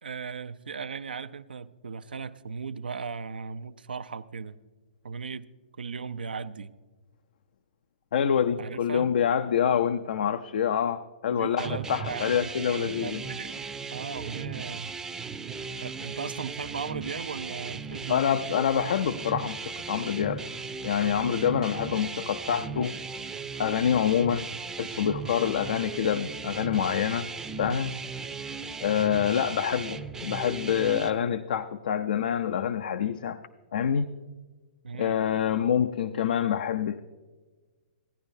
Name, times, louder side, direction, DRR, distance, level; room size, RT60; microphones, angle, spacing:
voice 1, 0.0-4.6 5.0-5.5 5.8-6.7 8.6-9.1 11.3-13.6 13.9-15.0 15.8-18.4 21.4-21.6 34.8-35.2, right 5 dB, 80° right, 0.5 m, -37 dB
voice 2, 8.1-13.2 18.1-20.4 20.8-23.0 23.6-24.5 24.8-27.3 27.6-27.9 28.8-33.4 33.7-34.1 34.9-37.0, left 8 dB, 60° left, 0.4 m, -26 dB
sound 1, 11.6-31.1, right 5 dB, 10° right, 0.5 m, -37 dB
16.0 x 10.0 x 2.6 m
figure-of-eight pair, 120°, 5 cm